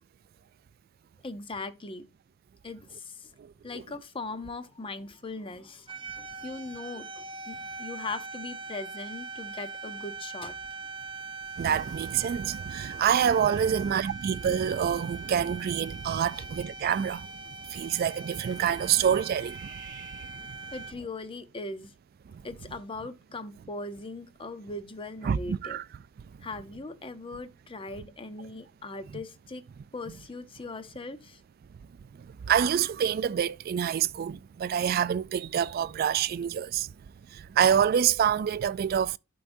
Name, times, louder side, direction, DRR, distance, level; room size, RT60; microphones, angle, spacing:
voice 1, 1.2-2.0 2.6-3.3 3.6-10.6 16.3-16.4 20.7-21.9 22.4-25.8 26.4-29.6 29.9-31.4, left 3 dB, 25° left, 0.7 m, -39 dB
voice 2, 3.4-3.8 11.6-20.6 25.2-25.8 32.2-36.9 37.3-39.2, right 8 dB, 50° right, 0.3 m, -27 dB
sound 1, 5.9-20.9, right 4 dB, 25° right, 0.7 m, -41 dB
11.5 x 4.7 x 2.6 m
head